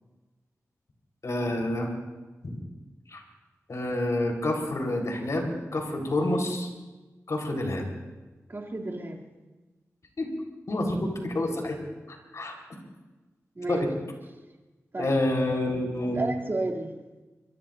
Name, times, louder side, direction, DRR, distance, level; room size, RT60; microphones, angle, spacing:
voice 1, 1.2-1.9 2.4-2.6 3.1-3.2 3.7-6.7 7.3-7.9 10.2-10.3 10.7-11.8 12.1-12.6 13.7-14.0 15.0-16.2, left 1 dB, 65° left, 1 dB, 4.1 m, -28 dB
voice 2, 8.5-9.2 13.5-13.9 14.9-15.2 16.0-16.9, right 2 dB, 40° right, 0 dB, 2.8 m, -32 dB
23.5 x 23.0 x 2.6 m, 1.2 s
wide cardioid pair, 70°, 6 cm